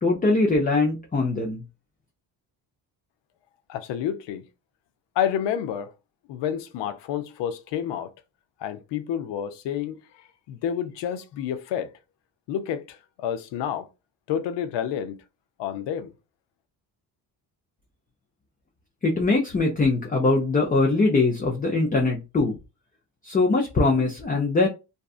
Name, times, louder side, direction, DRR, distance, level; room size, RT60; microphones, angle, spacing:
voice 1, 0.0-1.6 19.0-22.5 23.2-24.7, left 3 dB, 20° left, 0.5 m, -22 dB
voice 2, 3.7-4.4 5.2-5.9 6.3-8.1 8.6-10.0 10.5-11.9 12.5-13.9 14.3-15.2 15.6-16.1, left 9 dB, 90° left, 0.6 m, -29 dB
2.6 x 2.3 x 2.3 m
cardioid pair, 115°, 41 cm